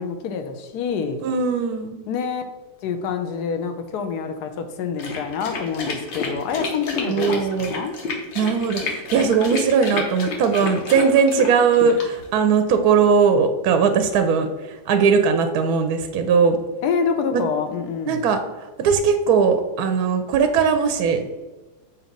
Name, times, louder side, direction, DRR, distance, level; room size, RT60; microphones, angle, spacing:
voice 1, 0.0-1.2 2.1-2.4 2.8-8.0 16.8-18.2, left 6 dB, 70° left, 6 dB, 1.1 m, -26 dB
voice 2, 1.2-2.0 7.1-7.7 8.3-16.6 17.3-17.4 18.1-21.3, right 5 dB, 70° right, 7 dB, 0.9 m, -19 dB
sound 1, 5.0-12.3, left 4 dB, 90° left, 1.8 m, -30 dB
7.0 x 2.9 x 5.2 m, 1.2 s
omnidirectional pair, 2.0 m